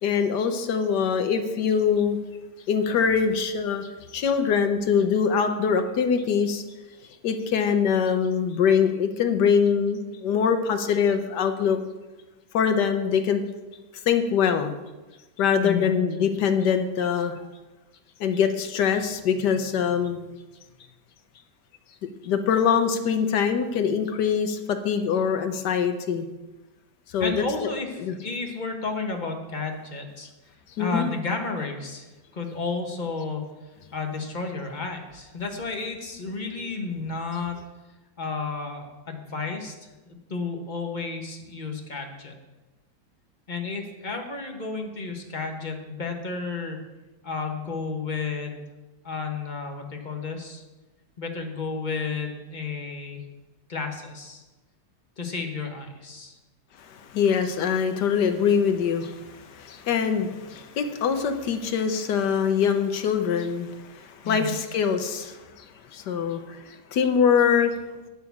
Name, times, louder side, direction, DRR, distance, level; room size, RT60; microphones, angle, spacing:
voice 1, 0.0-2.2 2.7-6.6 7.2-11.8 12.5-13.4 13.9-14.8 15.4-17.4 18.2-20.2 22.2-26.3 27.1-27.7 28.0-28.2 30.8-31.1 36.5-36.6 56.8-67.7, left 7 dB, 65° left, 7 dB, 1.3 m, -23 dB
voice 2, 27.2-30.3 30.8-33.5 33.9-37.6 38.2-39.7 40.1-42.3 43.5-46.8 47.2-48.6 49.0-50.6 51.2-53.2 53.7-54.4 55.2-56.4 64.2-64.5, left 4 dB, 30° left, 3 dB, 1.1 m, -32 dB
9.8 x 6.2 x 7.1 m, 1.1 s
omnidirectional pair, 2.1 m